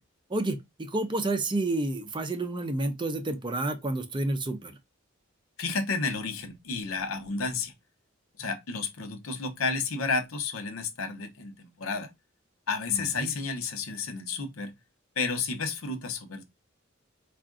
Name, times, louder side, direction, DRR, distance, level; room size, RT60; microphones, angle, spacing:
voice 1, 0.3-4.8 12.9-13.3, right 2 dB, 25° right, 0.5 m, -30 dB
voice 2, 5.6-7.7 8.4-12.1 12.7-14.7 15.2-16.4, left 4 dB, 80° left, 0.7 m, -31 dB
4.6 x 2.5 x 2.5 m
head